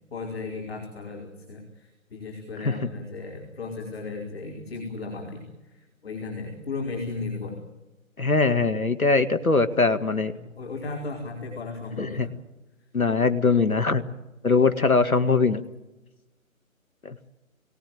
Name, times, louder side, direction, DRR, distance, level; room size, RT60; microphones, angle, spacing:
voice 1, 0.1-7.6 10.2-12.3, left 3 dB, 45° left, 1 dB, 4.5 m, -35 dB
voice 2, 8.2-10.3 12.0-12.3 12.9-14.0 14.4-15.6 17.0-17.2, left 4 dB, 80° left, 11 dB, 1.9 m, -21 dB
23.0 x 17.5 x 9.4 m, 1.0 s
figure-of-eight pair, 150°, 42 cm